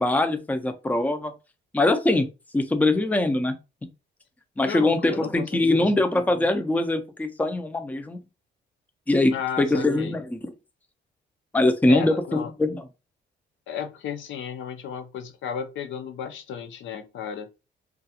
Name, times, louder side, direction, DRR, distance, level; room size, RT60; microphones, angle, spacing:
voice 1, 0.0-1.3 1.7-2.3 2.5-3.6 4.6-8.2 9.1-10.4 11.5-12.8, left 2 dB, 10° left, 0.4 m, -22 dB
voice 2, 4.6-6.0 9.3-10.2 11.9-12.5 13.7-17.5, left 8 dB, 75° left, 0.6 m, -34 dB
2.4 x 2.3 x 2.8 m
cardioid pair, 90°, 20 cm